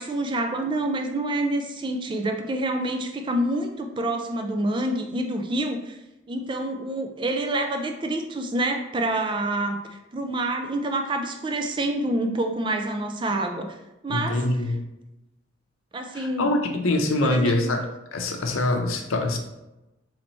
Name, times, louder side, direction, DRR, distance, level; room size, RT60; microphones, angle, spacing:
voice 1, 0.0-6.0 6.3-13.7 14.0-14.7 15.9-16.5 17.2-17.9, right 1 dB, 25° right, 5 dB, 0.3 m, -27 dB
voice 2, 14.1-14.8 16.1-17.8 18.1-19.4, left 2 dB, 85° left, 4 dB, 0.6 m, -24 dB
4.0 x 3.2 x 3.1 m, 0.96 s
head